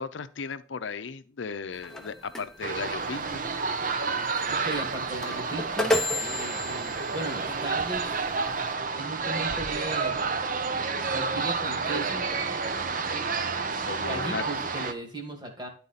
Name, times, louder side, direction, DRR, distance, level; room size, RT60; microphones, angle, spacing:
voice 1, 0.0-3.4 13.9-14.4, left 5 dB, 75° left, 12 dB, 0.6 m, -36 dB
sound 1, 1.7-8.7, left 2 dB, 5° left, 0.8 m, -34 dB
sound 2, 2.6-14.9, right 4 dB, 45° right, 0.6 m, -30 dB
voice 2, 4.0-8.3 9.0-10.3 11.1-12.3 14.1-15.7, right 2 dB, 20° right, 2 dB, 1.7 m, -37 dB
11.0 x 4.2 x 4.0 m, 0.41 s
head